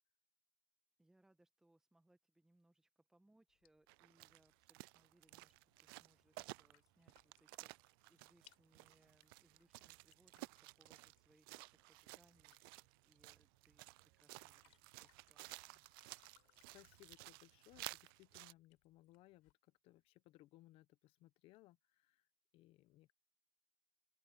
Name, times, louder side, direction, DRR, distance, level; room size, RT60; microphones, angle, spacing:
voice 1, 1.0-15.8, right 1 dB, 5° right, 1.4 m, -75 dB
sound 1, 3.5-19.5, left 35 dB, 60° left, 7.2 m, -76 dB
sound 2, 3.9-18.5, right 25 dB, 60° right, 0.4 m, -55 dB
voice 2, 16.7-19.5 19.8-22.2 22.5-23.1, left 17 dB, 45° left, 0.9 m, -65 dB
open air
supercardioid pair, 145°, 13 cm